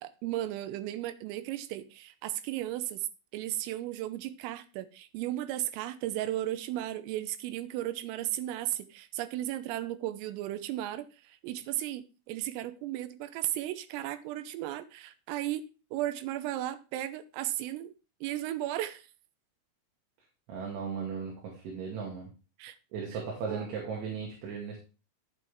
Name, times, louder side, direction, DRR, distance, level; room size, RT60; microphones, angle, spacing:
voice 1, 0.0-3.1 3.3-17.9 18.2-19.1 22.6-22.8 23.5-23.9, right 14 dB, 85° right, 3.5 m, -35 dB
voice 2, 20.5-22.3 22.9-24.8, right 6 dB, 70° right, 4.3 m, -36 dB
10.5 x 8.2 x 3.5 m
omnidirectional pair, 5.8 m